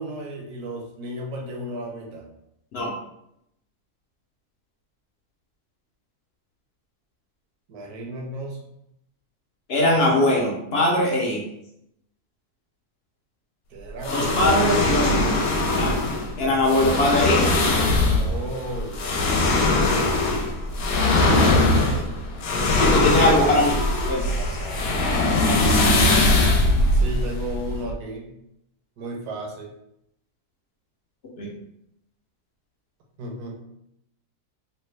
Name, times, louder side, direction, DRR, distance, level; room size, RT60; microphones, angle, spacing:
voice 1, 0.0-2.3 7.7-8.6 13.7-14.7 18.1-19.5 21.6-22.0 24.1-25.1 26.9-28.4 29.0-29.7 33.2-33.6, right 1 dB, 75° right, 0 dB, 1.2 m, -34 dB
voice 2, 9.7-11.5 14.1-15.4 15.7-16.0 16.4-17.4 22.8-23.8 24.1-24.3 31.4-31.5, left 1 dB, 60° left, -2 dB, 0.7 m, -21 dB
sound 1, 14.0-27.9, left 2 dB, 75° left, 1.1 m, -21 dB
3.3 x 2.3 x 3.1 m, 0.80 s
omnidirectional pair, 1.7 m